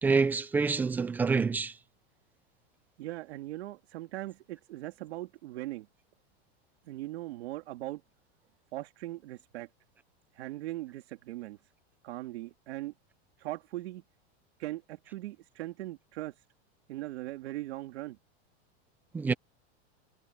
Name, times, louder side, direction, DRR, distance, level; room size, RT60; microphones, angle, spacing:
voice 1, 0.0-1.8 19.1-19.3, right 4 dB, 5° right, 0.3 m, -27 dB
voice 2, 3.0-5.9 6.9-8.0 8.7-9.7 10.3-11.6 12.0-12.9 13.4-14.0 14.6-16.4 16.9-18.2, right 16 dB, 70° right, 3.3 m, -40 dB
supercardioid pair, 165°, 33 cm